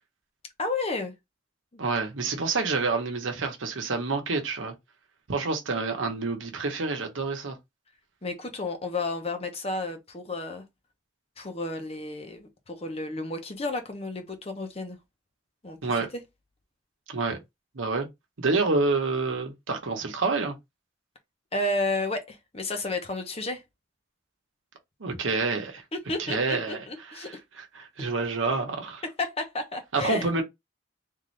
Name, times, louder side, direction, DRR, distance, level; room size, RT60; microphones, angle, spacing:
voice 1, 0.6-1.1 1.7-1.8 8.2-10.6 11.4-15.0 15.6-16.1 21.5-23.6 25.9-27.4 29.2-30.3, left 2 dB, 30° left, 0.8 m, -32 dB
voice 2, 1.8-4.7 5.3-7.6 15.8-16.1 17.1-17.4 17.7-18.1 18.4-20.6 25.0-25.8 26.2-29.0 29.9-30.4, right 3 dB, 90° right, 1.0 m, -28 dB
3.7 x 2.7 x 3.2 m
head